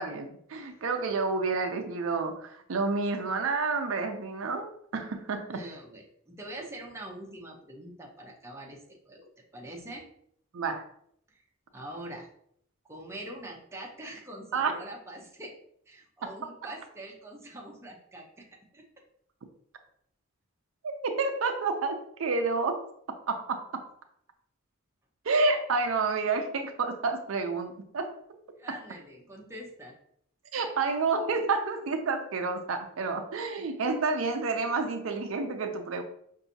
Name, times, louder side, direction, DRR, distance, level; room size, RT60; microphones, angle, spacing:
voice 1, 0.0-5.6 10.5-10.8 14.5-14.7 16.2-16.7 20.8-22.8 23.3-23.8 25.2-28.1 28.7-28.8 30.5-36.0, right 4 dB, 75° right, 6 dB, 0.5 m, -29 dB
voice 2, 5.5-9.3 9.5-10.1 11.3-11.4 11.7-12.3 12.8-15.5 15.9-18.5 18.7-18.8 28.6-30.0, right 1 dB, 15° right, -1 dB, 0.7 m, -44 dB
5.6 x 2.6 x 2.7 m, 0.69 s
head